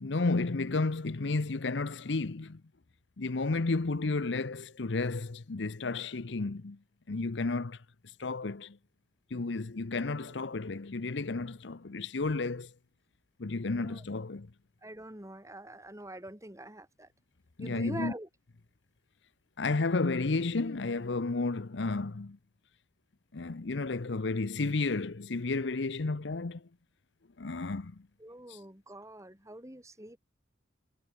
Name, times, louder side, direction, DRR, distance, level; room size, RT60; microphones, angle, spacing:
voice 1, 0.0-2.6 3.2-6.8 7.1-7.8 8.2-8.8 9.3-12.7 13.4-14.5 17.6-18.1 19.6-22.4 23.3-26.6 27.4-28.0 28.5-28.6, left 3 dB, 70° left, 0.8 m, -32 dB
voice 2, 14.8-17.1 17.6-18.3 28.2-30.2, right 1 dB, 15° right, 3.7 m, -44 dB
head